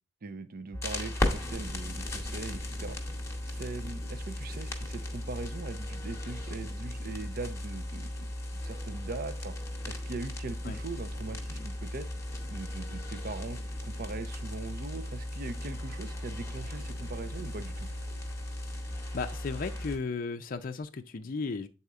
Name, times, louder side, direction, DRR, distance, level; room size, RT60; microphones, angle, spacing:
voice 1, 0.2-3.0 3.5-8.3 8.6-9.5 9.9-12.1 12.5-17.9, right 3 dB, 45° right, 12 dB, 0.5 m, -41 dB
sound 1, 0.7-20.0, left 1 dB, 15° left, 1.1 m, -36 dB
sound 2, 14.5-20.2, equal, 75° right, 3.1 m, -56 dB
voice 2, 19.1-21.7, left 4 dB, 45° left, 6 dB, 0.4 m, -35 dB
8.0 x 4.2 x 3.6 m, 0.33 s
head